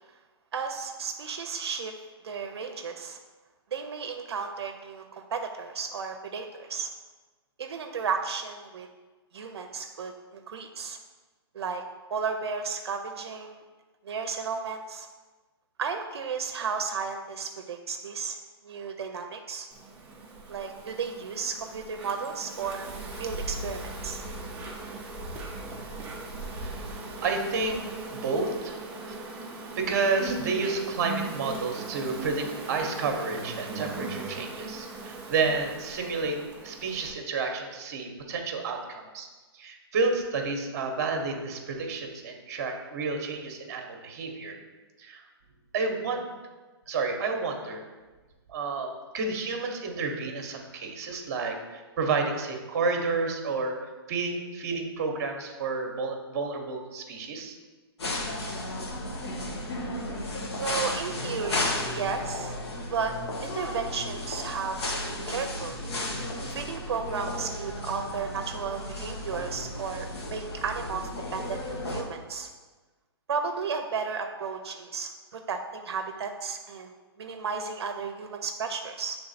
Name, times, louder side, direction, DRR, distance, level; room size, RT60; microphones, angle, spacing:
voice 1, 0.5-1.9 2.2-3.2 3.7-6.9 7.6-8.9 9.3-11.0 11.5-11.8 12.1-13.6 14.0-15.1 15.8-18.4 18.6-19.7 20.5-22.9 23.2-24.2 60.6-62.5 62.9-63.1 63.4-65.8 66.5-72.5 73.3-79.2, right 5 dB, 80° right, 5 dB, 0.5 m, -34 dB
Insect, 19.7-37.1, right 3 dB, 10° right, 0.5 m, -40 dB
Dark Language, 22.6-28.1, equal, 65° left, 1.5 m, -41 dB
voice 2, 26.6-39.3 39.5-44.6 45.0-45.2 45.7-46.3 46.9-47.8 48.5-53.8 54.1-57.6, right 4 dB, 40° right, 4 dB, 0.9 m, -30 dB
sound 1, 58.0-72.0, left 1 dB, 85° left, 1.2 m, -34 dB
6.8 x 3.5 x 4.1 m, 1.3 s
hypercardioid pair, 165°, 13 cm